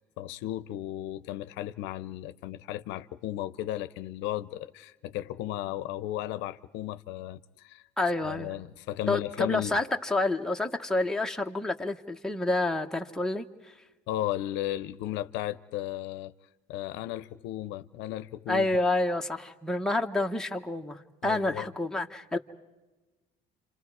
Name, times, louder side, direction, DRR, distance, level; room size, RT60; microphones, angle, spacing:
voice 1, 0.0-7.8 8.3-9.8 14.1-16.3 16.7-18.7 21.2-21.7, left 14 dB, 85° left, 0.7 m, -35 dB
voice 2, 8.0-8.5 9.1-13.7 18.5-22.4, left 2 dB, 5° left, 1.1 m, -29 dB
29.0 x 27.0 x 4.8 m
cardioid pair, 110°, 18 cm